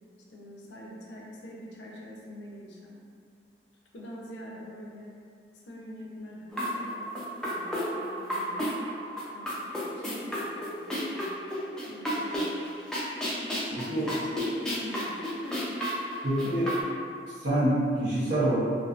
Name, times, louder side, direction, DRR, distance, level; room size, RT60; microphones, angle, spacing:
voice 1, 0.3-3.1 3.9-5.2 5.7-7.0 7.4-8.7 9.3-11.3 11.8-12.6 13.7-15.7, equal, 75° left, -2 dB, 0.5 m, -45 dB
sound 1, 6.5-16.8, equal, 5° left, 0.3 m, -32 dB
voice 2, 13.7-14.1 16.2-16.7 17.4-18.6, right 1 dB, 70° right, -11 dB, 0.8 m, -26 dB
2.4 x 2.4 x 2.3 m, 2.2 s
head